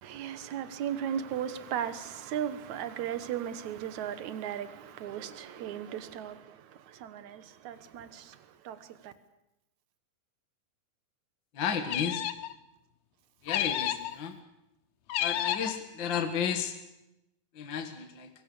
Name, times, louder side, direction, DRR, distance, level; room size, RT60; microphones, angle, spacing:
voice 1, 0.0-9.1, right 9 dB, 60° right, 2.1 m, -37 dB
voice 2, 11.5-12.2 13.4-14.3 15.2-16.7 17.6-18.3, left 7 dB, 45° left, 1.5 m, -32 dB
sound 1, 11.9-12.5 13.5-14.1 15.1-15.8, left 12 dB, 85° left, 1.6 m, -31 dB
25.5 x 22.0 x 7.0 m
omnidirectional pair, 4.6 m